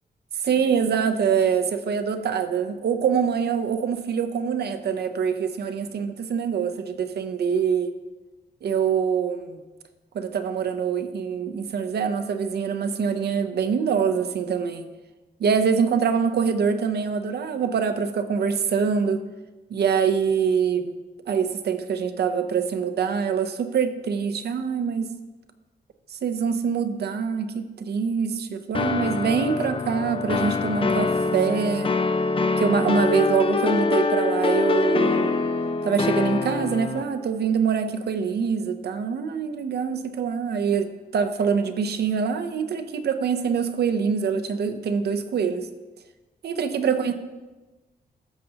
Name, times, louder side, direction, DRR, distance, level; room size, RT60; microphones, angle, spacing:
voice 1, 0.4-7.9 8.6-9.6 10.1-14.9 15.4-19.2 19.7-20.9 21.3-25.1 26.1-31.9 32.6-35.4 35.8-45.7 46.4-47.1, right 6 dB, 75° right, 9 dB, 0.6 m, -24 dB
sound 1, 28.7-37.0, left 4 dB, 30° left, 0.5 m, -24 dB
13.5 x 6.7 x 2.8 m, 1.2 s
wide cardioid pair, 140°, 17 cm